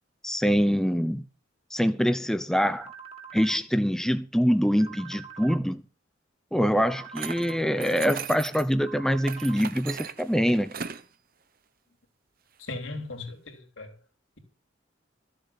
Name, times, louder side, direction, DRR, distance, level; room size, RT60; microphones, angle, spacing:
voice 1, 0.2-1.2 1.7-2.9 3.3-5.8 6.5-10.7, equal, ahead, 0.6 m, -24 dB
sound 1, 2.8-3.6 4.8-5.6 6.8-7.6 8.8-9.6, right 7 dB, 30° right, 1.7 m, -44 dB
sound 2, 7.1-8.7 9.2-11.0, right 7 dB, 50° right, 0.9 m, -38 dB
voice 2, 12.6-13.9, left 2 dB, 85° left, 3.3 m, -37 dB
14.0 x 7.7 x 6.9 m
head